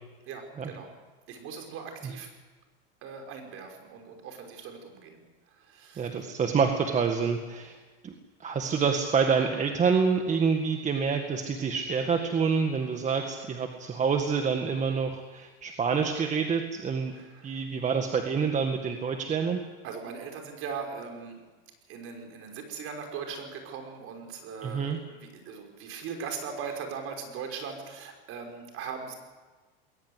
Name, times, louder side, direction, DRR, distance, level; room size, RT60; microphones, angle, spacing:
voice 1, 0.3-0.9 1.3-2.3 3.0-6.2 17.1-17.6 19.8-21.4 21.9-29.1, right 6 dB, 50° right, 4 dB, 5.6 m, -40 dB
voice 2, 6.0-7.8 8.0-8.1 8.4-17.1 17.4-19.6 24.6-25.0, right 5 dB, 25° right, 5 dB, 1.8 m, -27 dB
21.0 x 19.0 x 8.1 m, 1.3 s
supercardioid pair, 130°, 29 cm